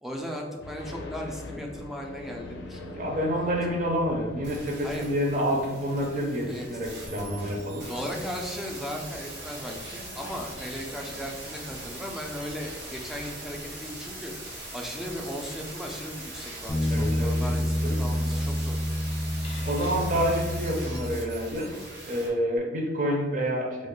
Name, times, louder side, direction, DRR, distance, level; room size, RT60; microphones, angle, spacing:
voice 1, 0.0-3.0 3.4-3.5 4.8-5.1 6.5-6.7 7.4-7.5 7.9-14.3 14.7-18.8, equal, ahead, 0 dB, 0.3 m, -37 dB
Woodland-Birds-Propelled-Airliner, 0.6-17.4, left 2 dB, 75° left, 0.4 m, -45 dB
voice 2, 2.9-7.9 16.9-17.4 17.8-18.0 19.6-21.8 22.1-23.9, equal, 45° right, 1 dB, 0.6 m, -28 dB
sound 1, 4.4-22.3 22.6-22.7, right 1 dB, 65° right, 1.0 m, -41 dB
sound 2, 16.7-21.6, left 1 dB, 30° left, 0.7 m, -28 dB
3.1 x 2.1 x 3.7 m, 1.2 s
head